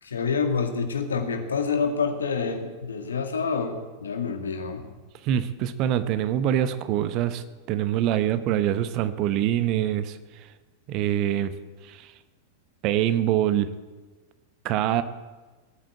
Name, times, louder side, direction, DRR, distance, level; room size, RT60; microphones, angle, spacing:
voice 1, 0.0-4.9, left 5 dB, 70° left, 5 dB, 2.0 m, -27 dB
voice 2, 5.2-10.2 10.9-11.5 11.8-12.1 12.8-13.7 14.6-15.0, right 11 dB, 40° right, 12 dB, 1.0 m, -24 dB
18.0 x 9.0 x 8.1 m, 1.3 s
figure-of-eight pair, 90°, 0 cm